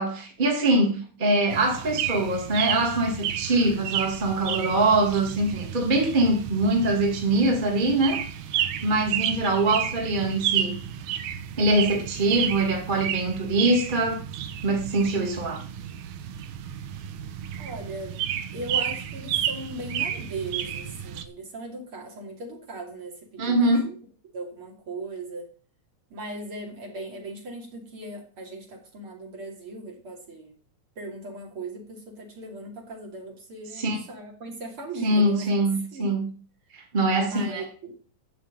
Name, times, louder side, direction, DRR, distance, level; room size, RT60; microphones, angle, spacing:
voice 1, 0.0-8.2 8.8-10.7 11.6-14.2 14.6-15.6 23.4-23.9 33.7-34.0 35.0-36.2 36.7-37.6, right 2 dB, 15° right, 0 dB, 1.9 m, -23 dB
sound 1, 1.5-21.2, right 10 dB, 70° right, 2.3 m, -32 dB
voice 2, 17.6-18.2 18.5-23.9 24.3-25.5 26.1-30.5 31.0-35.5 35.9-36.1 37.2-37.9, right 2 dB, 40° right, 1 dB, 3.7 m, -38 dB
13.0 x 4.9 x 8.9 m, 0.41 s
omnidirectional pair, 3.9 m